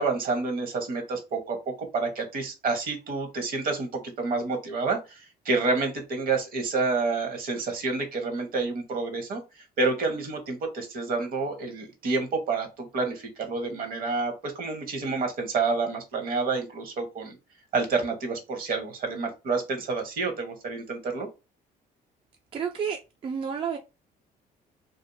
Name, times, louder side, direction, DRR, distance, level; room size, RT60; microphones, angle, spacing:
voice 1, 0.0-17.4 17.7-21.3, right 3 dB, 60° right, 1.0 m, -29 dB
voice 2, 22.5-23.8, right 7 dB, 35° right, 0.4 m, -31 dB
2.6 x 2.4 x 2.6 m
cardioid pair, 110°, 17 cm